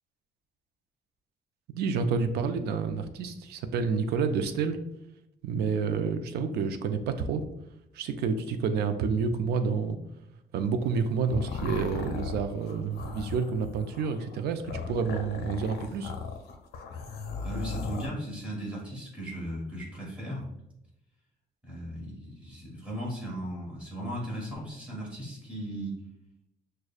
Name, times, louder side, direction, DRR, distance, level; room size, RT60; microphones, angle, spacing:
voice 1, 1.7-4.8 5.4-7.4 7.9-10.0 10.5-16.1, right 5 dB, 80° right, 8 dB, 0.4 m, -29 dB
sound 1, 10.8-18.1, left 4 dB, 85° left, 0.5 m, -37 dB
voice 2, 17.4-20.5 21.6-26.0, equal, 10° right, -5 dB, 1.3 m, -37 dB
6.2 x 2.2 x 2.3 m, 0.83 s
cardioid pair, 165°, 16 cm